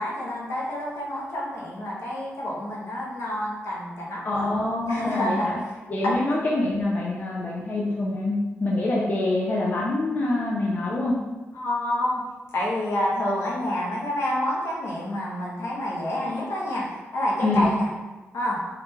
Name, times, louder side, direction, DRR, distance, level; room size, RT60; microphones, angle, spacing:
voice 1, 0.0-4.5 4.9-5.6 6.0-6.1 11.5-12.2 12.5-17.9 18.3-18.7, left 1 dB, 70° left, -4 dB, 0.9 m, -28 dB
voice 2, 4.2-5.6 5.9-11.1 17.4-17.7, left 2 dB, 35° left, -4 dB, 0.4 m, -25 dB
3.1 x 2.4 x 3.3 m, 1.2 s
wide cardioid pair, 125°, 5 cm